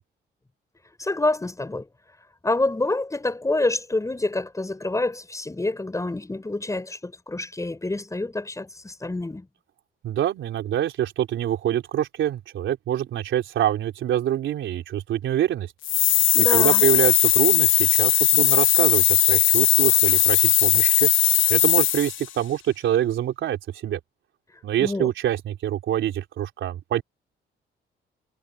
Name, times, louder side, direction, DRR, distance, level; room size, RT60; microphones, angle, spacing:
voice 1, 1.0-1.9 2.4-9.5 16.3-16.8 24.8-25.1, left 2 dB, 15° left, 5.7 m, -27 dB
voice 2, 10.0-15.7 16.5-21.1 21.5-24.0 24.6-27.0, right 11 dB, 75° right, 3.7 m, -25 dB
sound 1, 15.8-22.3, left 13 dB, 80° left, 1.0 m, -18 dB
cardioid pair, 90°, 20 cm